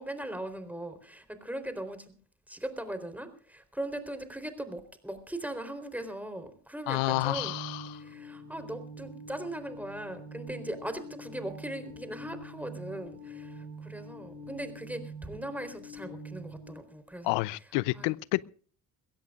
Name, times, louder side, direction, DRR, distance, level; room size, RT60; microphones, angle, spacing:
voice 1, 0.0-2.1 2.5-7.5 7.9-17.4 17.9-18.1, right 1 dB, 5° right, 3.9 m, -39 dB
voice 2, 6.9-8.0 17.2-18.4, left 21 dB, 75° left, 0.7 m, -29 dB
sound 1, 7.1-16.7, right 1 dB, 75° right, 5.9 m, -45 dB
22.5 x 16.5 x 2.5 m
hypercardioid pair, 60°, 43 cm